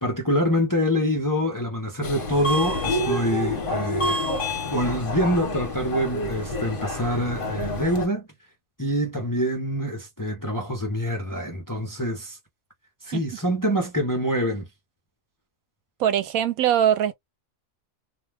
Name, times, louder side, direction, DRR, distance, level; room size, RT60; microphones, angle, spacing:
voice 1, 0.0-4.2 4.7-8.3 8.8-12.4 13.0-14.7, equal, 20° left, 0.6 m, -25 dB
Subway metro underground, 2.0-8.1, left 1 dB, 45° left, 0.9 m, -28 dB
voice 2, 16.0-17.1, right 10 dB, 80° right, 1.1 m, -21 dB
2.5 x 2.3 x 3.3 m
omnidirectional pair, 1.5 m